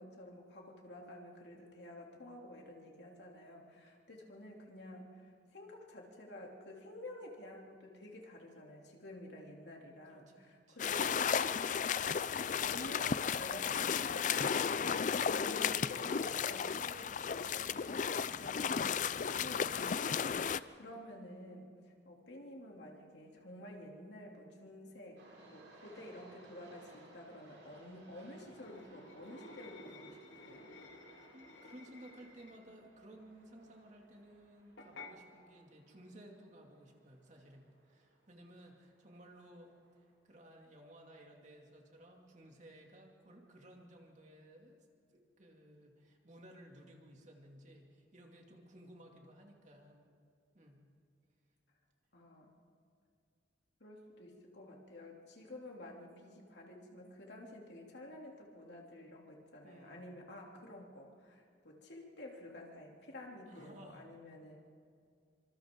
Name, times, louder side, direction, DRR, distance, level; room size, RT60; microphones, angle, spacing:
voice 1, 0.0-11.3 12.5-17.9 18.3-21.7 22.0-30.8 52.1-52.5 53.8-64.6, left 1 dB, 65° left, -1 dB, 3.0 m, -51 dB
voice 2, 10.1-10.8 31.3-44.8 45.1-50.1 50.5-50.8 59.6-60.3 63.5-64.1, right 1 dB, 40° right, 1 dB, 2.5 m, -57 dB
sound 1, 10.8-20.6, left 7 dB, 40° left, 0.4 m, -34 dB
sound 2, 25.2-40.1, right 2 dB, 85° right, 7.1 m, -62 dB
sound 3, 28.5-32.7 34.8-35.1, left 2 dB, 85° left, 2.0 m, -53 dB
27.0 x 25.5 x 3.8 m, 2.3 s
head